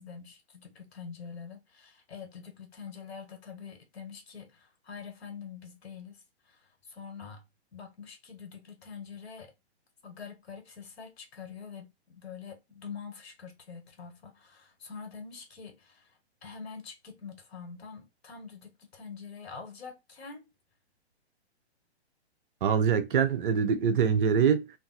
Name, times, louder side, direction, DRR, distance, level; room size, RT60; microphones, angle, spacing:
voice 1, 0.0-7.4 7.7-9.5 10.0-20.5, left 6 dB, 65° left, 1.4 m, -45 dB
voice 2, 22.6-24.7, right 7 dB, 50° right, 0.6 m, -24 dB
2.6 x 2.4 x 3.9 m
hypercardioid pair, 145°, 33 cm